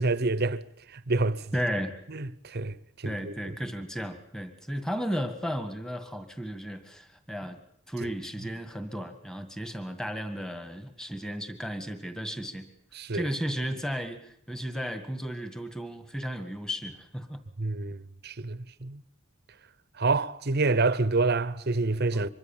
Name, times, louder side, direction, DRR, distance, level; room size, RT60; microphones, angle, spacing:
voice 1, 0.0-1.5 2.1-3.6 8.0-8.1 12.9-13.3 17.6-19.0 20.0-22.3, right 3 dB, 50° right, 0.9 m, -28 dB
voice 2, 1.5-2.0 3.0-7.6 7.9-12.7 13.1-17.4 22.1-22.3, equal, 5° left, 1.8 m, -34 dB
25.0 x 22.5 x 7.4 m
head